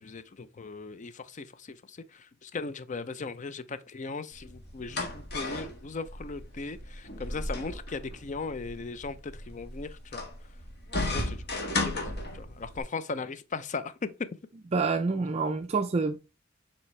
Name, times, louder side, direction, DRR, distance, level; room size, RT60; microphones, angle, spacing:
voice 1, 0.0-10.2 10.9-14.3, left 4 dB, 40° left, 0.5 m, -38 dB
sound 1, 4.3-12.8, left 2 dB, 55° left, 1.6 m, -35 dB
voice 2, 14.7-16.2, right 4 dB, 30° right, 0.4 m, -27 dB
7.3 x 4.3 x 3.1 m
head